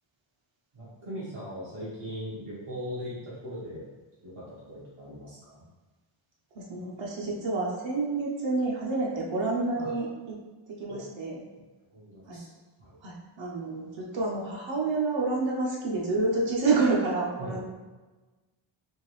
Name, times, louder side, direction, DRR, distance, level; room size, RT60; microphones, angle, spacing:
voice 1, 0.7-3.9 4.2-5.6 9.8-9.9 10.9-11.0 11.9-12.4 12.8-13.0 17.4-17.6, equal, 85° right, -9 dB, 1.5 m, -39 dB
voice 2, 6.5-10.1 10.7-11.4 12.3-12.4 13.0-17.6, right 3 dB, 65° right, -3 dB, 0.8 m, -28 dB
3.6 x 2.6 x 3.1 m, 1.2 s
wide cardioid pair, 165°, 50 cm